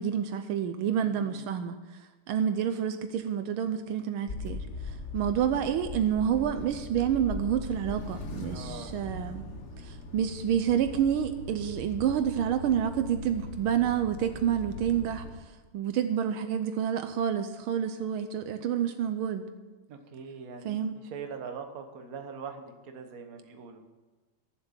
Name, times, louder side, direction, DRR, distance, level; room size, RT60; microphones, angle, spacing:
voice 1, 0.0-1.8 2.3-9.4 9.8-15.3 15.7-19.5 20.6-21.0, right 9 dB, 80° right, 9 dB, 1.5 m, -28 dB
voice 2, 1.0-1.4 8.5-9.0 19.9-20.8 21.0-23.8, right 6 dB, 50° right, 5 dB, 1.4 m, -42 dB
sound 1, 4.3-15.3, left 3 dB, 45° left, 1.0 m, -40 dB
12.5 x 7.5 x 7.3 m, 1.2 s
omnidirectional pair, 2.4 m